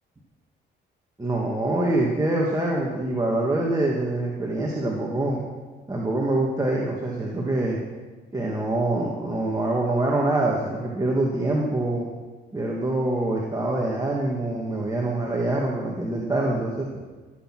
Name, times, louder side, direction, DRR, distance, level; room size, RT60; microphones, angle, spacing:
voice 1, 1.2-5.4 5.9-7.8 8.3-12.1 12.5-16.9, right 2 dB, 20° right, -3 dB, 2.0 m, -25 dB
15.5 x 8.3 x 6.2 m, 1.3 s
cardioid pair, 90°, 20 cm